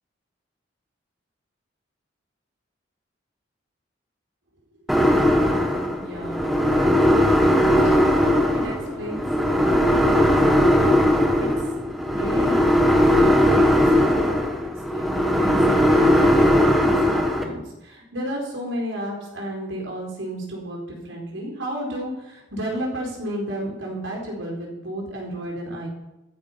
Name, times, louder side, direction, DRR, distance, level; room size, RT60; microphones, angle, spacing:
sound 1, 4.9-17.4, equal, ahead, 1.4 m, -19 dB
voice 1, 6.0-7.0 7.4-10.9 11.4-11.7 12.1-14.3 14.9-25.9, equal, 75° right, -1 dB, 4.6 m, -32 dB
14.5 x 9.7 x 5.8 m, 0.94 s
head